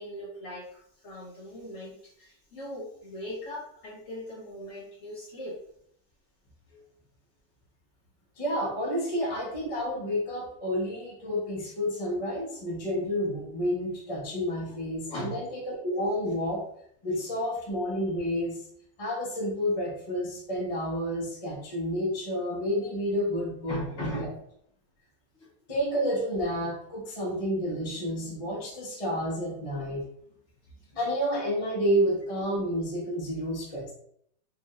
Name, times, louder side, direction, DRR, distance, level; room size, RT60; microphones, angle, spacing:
voice 1, 0.0-5.6 6.7-6.8 14.7-14.8 15.1-15.4 23.7-24.4 25.4-25.5, equal, 50° left, -5 dB, 1.2 m, -39 dB
voice 2, 8.4-16.6 17.0-18.6 19.0-24.3 25.7-30.0 30.9-33.9, equal, 25° left, -4 dB, 0.8 m, -30 dB
4.8 x 2.6 x 2.4 m, 0.68 s
omnidirectional pair, 2.0 m